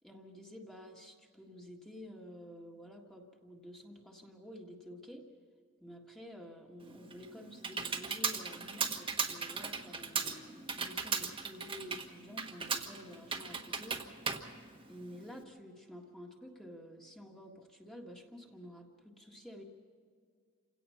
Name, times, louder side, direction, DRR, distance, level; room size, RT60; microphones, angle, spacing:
voice 1, 0.0-5.3 5.8-14.1 14.8-19.6, equal, 5° left, 0 dB, 1.7 m, -50 dB
Computer keyboard, 6.8-15.4, right 5 dB, 25° right, 1.4 m, -37 dB
28.5 x 17.5 x 5.7 m, 2.1 s
head